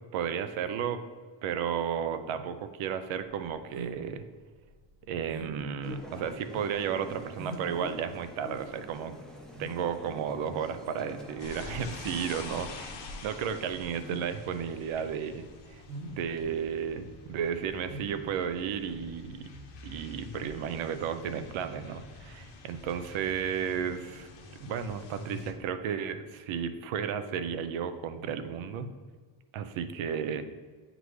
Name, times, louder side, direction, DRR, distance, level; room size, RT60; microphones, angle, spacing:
voice 1, 0.1-1.0 1.4-4.2 5.1-9.1 9.6-19.5 19.8-24.3 24.6-28.9 29.5-30.4, right 7 dB, 80° right, 10 dB, 0.6 m, -33 dB
sound 1, 3.4-19.5, right 1 dB, 35° right, 0.8 m, -46 dB
sound 2, 5.8-11.4, left 1 dB, ahead, 0.4 m, -46 dB
sound 3, 11.4-25.5, left 3 dB, 60° left, 0.9 m, -46 dB
8.1 x 3.8 x 3.2 m, 1.5 s
cardioid pair, 170°, 47 cm